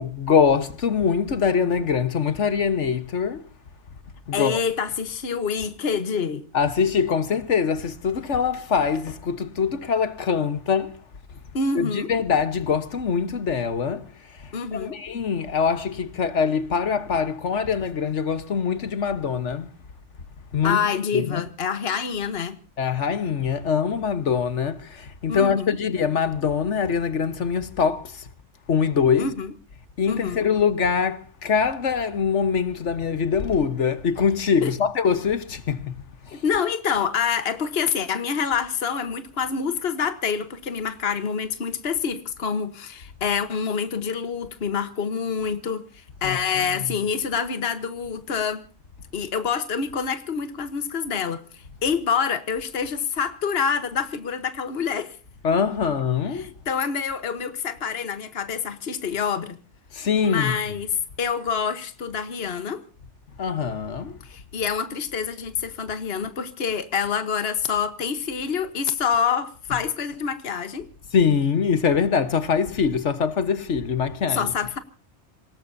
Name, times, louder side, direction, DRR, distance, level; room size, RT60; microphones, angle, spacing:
voice 1, 0.0-3.5 4.3-4.6 6.5-11.0 11.7-19.7 20.5-20.8 21.1-21.4 22.8-28.3 28.7-29.3 30.0-35.9 36.2-36.4 46.2-46.9 55.4-56.5 59.9-60.5 63.4-64.2 71.1-74.5, left 6 dB, 85° left, 1.6 m, -23 dB
voice 2, 4.3-6.4 11.5-12.1 14.5-15.0 20.6-22.6 25.3-25.7 29.2-29.5 30.1-30.4 34.6-34.7 36.4-48.6 49.1-55.2 56.3-59.6 60.2-62.8 64.2-70.9 74.3-74.8, left 6 dB, 60° left, 1.5 m, -27 dB
26.5 x 18.5 x 2.7 m
omnidirectional pair, 1.2 m